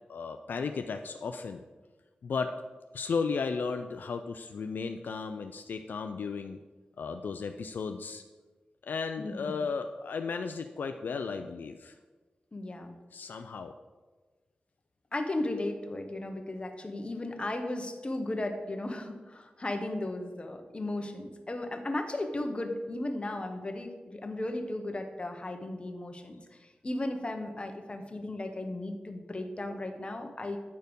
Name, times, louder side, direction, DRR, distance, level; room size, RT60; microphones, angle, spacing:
voice 1, 0.1-1.6 2.2-2.6 2.9-6.6 7.0-8.2 8.8-11.9 13.1-13.7, left 5 dB, 80° left, 7 dB, 0.4 m, -34 dB
voice 2, 9.2-9.6 12.5-12.9 15.1-30.6, left 2 dB, 35° left, 5 dB, 1.1 m, -35 dB
9.4 x 4.4 x 5.2 m, 1.3 s
cardioid pair, 60°, 3 cm